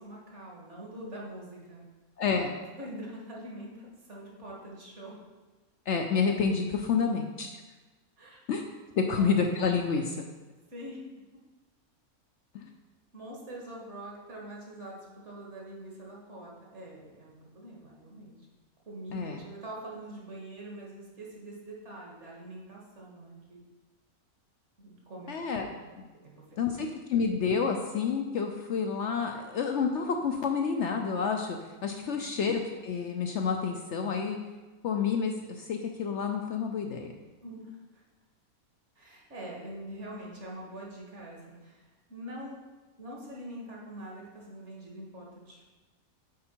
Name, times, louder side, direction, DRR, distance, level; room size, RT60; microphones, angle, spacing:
voice 1, 0.0-1.8 2.7-5.2 8.2-8.4 8.9-9.3 10.7-11.0 13.1-18.4 18.9-23.6 24.8-25.8 26.2-27.0 32.0-32.4 37.4-38.0 39.0-42.6 43.0-45.7, right 1 dB, 55° right, -3 dB, 1.9 m, -44 dB
voice 2, 2.2-2.5 5.9-7.5 8.5-8.6 9.0-10.3 12.5-12.6 19.1-19.4 25.3-25.6 26.0-26.1 26.6-31.6 31.8-34.4 34.8-37.1, left 5 dB, 65° left, 3 dB, 0.8 m, -29 dB
8.5 x 4.7 x 4.4 m, 1.2 s
omnidirectional pair, 1.5 m